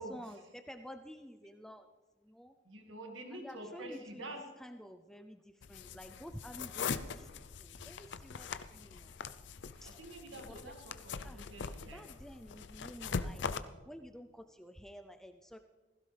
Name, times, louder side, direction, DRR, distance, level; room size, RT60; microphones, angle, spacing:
voice 1, 0.0-1.9 2.2-2.5 3.3-4.3 4.6-7.3 7.6-9.2 9.8-10.0 10.5-10.7 11.2-11.5 11.9-13.4 13.9-15.6, equal, 5° left, 7 dB, 0.4 m, -51 dB
voice 2, 2.7-4.4 10.0-12.0, right 1 dB, 85° right, 3 dB, 2.0 m, -47 dB
sound 1, 5.6-13.6, left 5 dB, 65° left, 0.5 m, -42 dB
16.0 x 15.5 x 3.4 m, 1.2 s
head